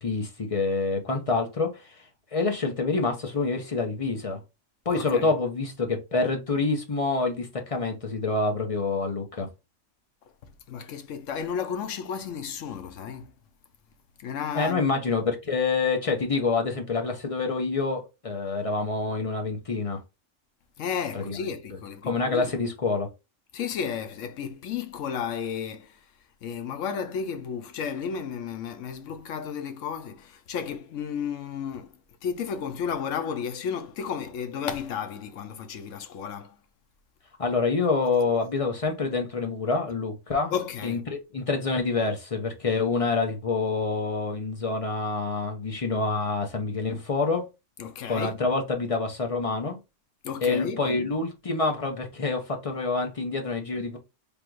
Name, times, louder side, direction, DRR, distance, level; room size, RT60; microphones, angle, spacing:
voice 1, 0.0-2.0 2.3-4.4 4.9-9.5 14.5-20.0 21.1-21.4 21.7-23.1 37.4-40.5 40.8-47.4 48.1-49.8 50.4-54.0, left 3 dB, 35° left, 0.6 m, -27 dB
voice 2, 4.9-5.3 10.7-13.3 14.2-15.0 20.8-22.5 23.5-25.9 26.4-31.9 32.2-36.5 40.5-41.0 47.8-48.3 50.2-51.1, left 7 dB, 85° left, 1.0 m, -33 dB
3.5 x 2.5 x 4.5 m
omnidirectional pair, 1.3 m